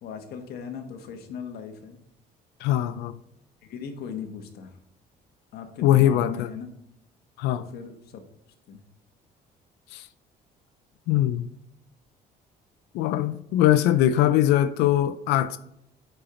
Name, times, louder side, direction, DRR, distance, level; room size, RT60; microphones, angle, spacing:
voice 1, 0.0-2.0 3.6-4.7 5.5-6.7 7.5-8.2 8.7-8.8, left 7 dB, 70° left, 1.2 m, -38 dB
voice 2, 2.6-3.1 5.8-6.5 7.4-7.6 9.9-10.0 11.1-11.5 12.9-15.6, left 12 dB, 90° left, 0.4 m, -21 dB
9.0 x 4.4 x 3.8 m
cardioid pair, 110°, 17 cm